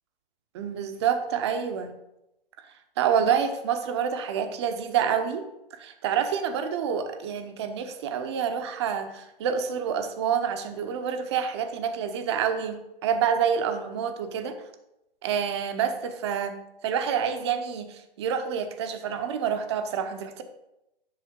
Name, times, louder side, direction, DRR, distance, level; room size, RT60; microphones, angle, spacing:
voice 1, 0.5-1.9 3.0-5.5 5.8-14.5 15.2-20.4, right 7 dB, 30° right, 8 dB, 0.6 m, -28 dB
7.7 x 6.2 x 3.6 m, 0.90 s
figure-of-eight pair, 130°, 29 cm